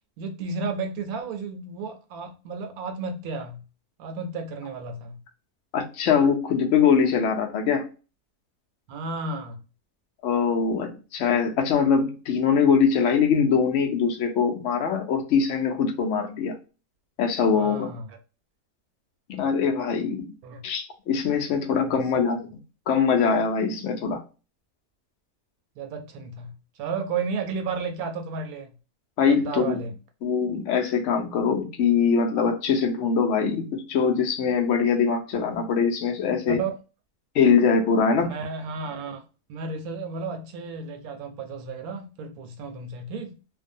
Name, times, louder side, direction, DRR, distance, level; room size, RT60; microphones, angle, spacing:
voice 1, 0.2-3.6 4.0-5.2 8.9-9.6 17.5-18.2 20.4-20.6 21.8-22.1 25.8-26.5 26.8-28.7 29.4-29.9 36.5-36.7 38.2-39.2 39.5-43.3, right 4 dB, 75° right, 1.0 m, -33 dB
voice 2, 5.7-7.9 10.2-16.6 17.2-17.9 19.3-20.3 20.6-22.4 22.9-24.2 29.2-29.8 30.2-36.6 37.3-38.3, left 6 dB, 60° left, 0.8 m, -22 dB
2.6 x 2.2 x 2.5 m
omnidirectional pair, 1.6 m